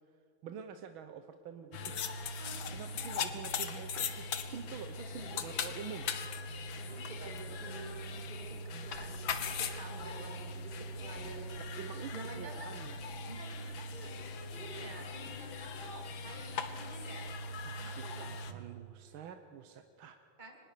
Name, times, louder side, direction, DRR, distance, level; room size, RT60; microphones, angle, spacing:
voice 1, 0.4-2.0 2.7-6.1 11.6-13.0 17.6-20.2, right 8 dB, 80° right, 8 dB, 1.7 m, -47 dB
sound 1, 1.7-18.5, left 4 dB, 75° left, 2.0 m, -40 dB
voice 2, 2.4-2.9 5.2-5.4 6.7-11.6 12.1-12.7 13.3-14.1 14.5-17.3 17.8-18.6 20.4-20.6, right 3 dB, 20° right, 1 dB, 2.9 m, -49 dB
24.0 x 20.0 x 6.7 m, 2.6 s
omnidirectional pair, 2.2 m